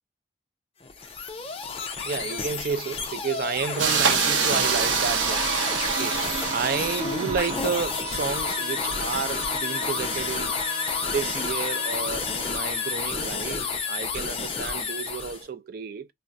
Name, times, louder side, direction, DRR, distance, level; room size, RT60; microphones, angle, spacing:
sound 1, 0.8-15.4, left 5 dB, 30° left, 0.6 m, -31 dB
voice 1, 2.0-5.5 6.0-6.2 6.5-10.6 11.1-16.1, right 5 dB, 50° right, 0.4 m, -31 dB
sound 2, 3.8-7.8, right 6 dB, 85° right, 0.6 m, -25 dB
sound 3, 4.5-13.9, right 2 dB, 35° right, 0.8 m, -36 dB
2.4 x 2.1 x 3.9 m
head